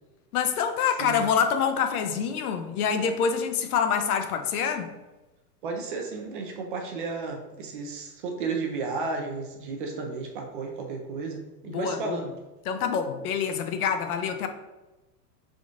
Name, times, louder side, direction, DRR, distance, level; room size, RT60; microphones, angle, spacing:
voice 1, 0.3-4.9 11.7-12.2 12.7-14.5, left 7 dB, 65° left, 0.6 m, -26 dB
voice 2, 5.6-12.3, right 4 dB, 35° right, 0.4 m, -33 dB
3.8 x 3.6 x 2.4 m
hypercardioid pair, 135°, 47 cm